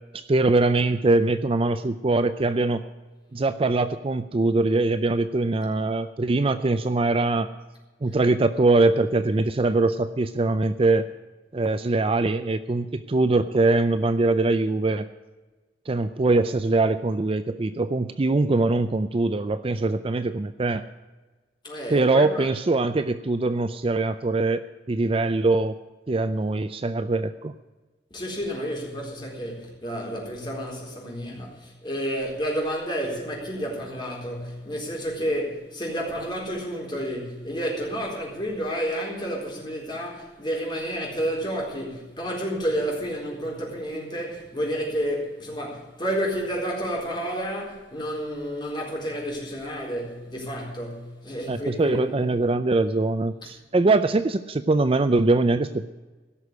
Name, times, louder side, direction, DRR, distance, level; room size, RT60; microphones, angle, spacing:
voice 1, 0.1-2.8 3.3-7.5 8.0-11.1 11.5-15.1 15.9-20.8 21.9-24.6 24.9-25.7 26.1-27.5 51.5-55.8, right 2 dB, 30° right, 0.4 m, -22 dB
voice 2, 21.6-22.5 28.1-52.2 53.4-53.5, equal, 25° left, 4.1 m, -30 dB
16.5 x 6.4 x 9.6 m
head